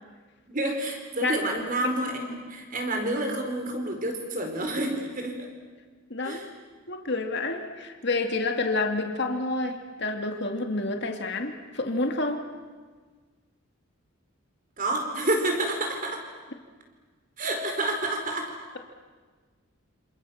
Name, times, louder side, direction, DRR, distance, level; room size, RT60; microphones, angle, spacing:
voice 1, 0.5-5.5 6.2-6.5 14.8-16.2 17.4-18.5, right 1 dB, 40° right, 3 dB, 4.8 m, -29 dB
voice 2, 6.1-6.4 6.9-12.4, left 2 dB, 55° left, 4 dB, 2.3 m, -29 dB
28.0 x 27.5 x 7.3 m, 1.5 s
head